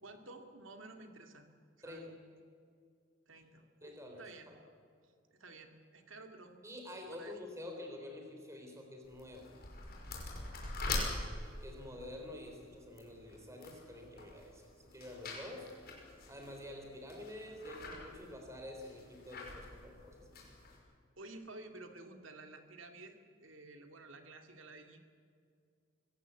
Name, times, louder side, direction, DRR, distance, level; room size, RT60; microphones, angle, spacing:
voice 1, 0.0-1.5 1.8-2.2 3.3-4.5 5.0-6.6 7.1-7.4 10.8-11.1 21.2-25.0, right 2 dB, 70° right, 5 dB, 2.4 m, -52 dB
voice 2, 3.8-4.5 6.6-9.5 11.6-15.7 16.3-20.4, left 1 dB, 15° right, 3 dB, 3.9 m, -48 dB
sound 1, 9.0-20.8, left 2 dB, 50° left, 5.7 m, -45 dB
24.0 x 17.5 x 8.3 m, 2.3 s
head